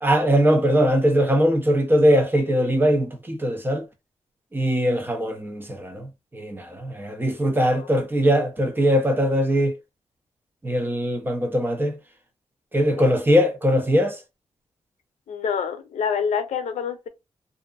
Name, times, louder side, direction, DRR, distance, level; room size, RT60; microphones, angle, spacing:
voice 1, 0.0-3.8 4.5-9.7 10.6-12.0 12.7-14.2, equal, 15° right, 0.6 m, -21 dB
voice 2, 15.3-17.1, left 6 dB, 85° left, 0.5 m, -27 dB
2.6 x 2.5 x 2.4 m
wide cardioid pair, 110°, 12 cm